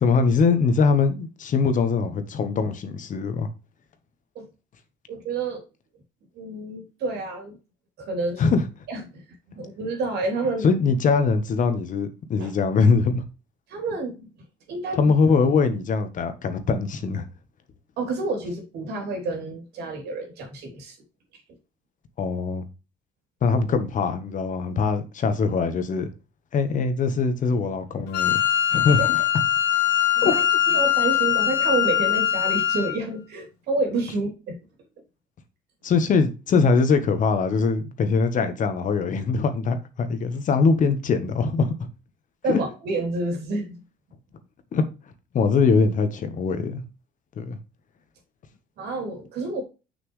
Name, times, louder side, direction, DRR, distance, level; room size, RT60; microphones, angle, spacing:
voice 1, 0.0-3.5 8.4-8.7 10.6-13.2 15.0-17.2 22.2-22.6 23.4-26.1 26.5-28.4 28.7-29.2 30.2-30.3 35.8-41.7 42.5-42.6 44.7-44.8 45.3-46.8 47.4-47.6, left 4 dB, 50° left, 1.2 m, -22 dB
voice 2, 5.1-5.6 6.3-7.6 8.0-8.5 8.9-9.2 9.5-10.7 12.4-12.5 13.7-14.3 14.7-15.0 18.0-21.0 29.0-29.1 30.2-30.4 30.7-34.6 42.4-43.8 48.8-49.6, right 2 dB, 75° right, 3.1 m, -29 dB
Wind instrument woodwind instrument, 28.1-33.0, left 10 dB, 80° left, 1.8 m, -22 dB
6.4 x 5.9 x 3.2 m
cardioid pair, 110°, 17 cm